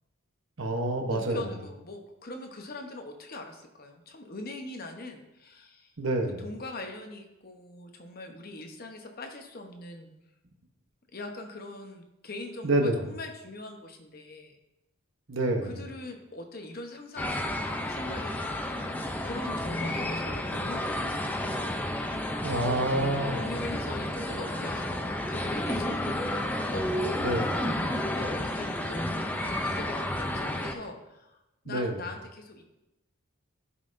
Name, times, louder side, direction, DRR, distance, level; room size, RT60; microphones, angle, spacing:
voice 1, 0.6-1.4 6.0-6.4 12.6-13.0 15.3-15.7 22.4-23.4 27.2-27.5 31.7-31.9, right 1 dB, 65° right, 3 dB, 0.9 m, -27 dB
voice 2, 1.1-5.9 6.4-10.1 11.1-14.6 15.6-21.1 23.3-27.2 28.2-31.4 31.6-32.6, left 2 dB, 45° left, 4 dB, 0.9 m, -42 dB
sound 1, 17.2-30.7, left 1 dB, 10° left, 0.4 m, -31 dB
12.5 x 5.5 x 2.6 m, 0.92 s
head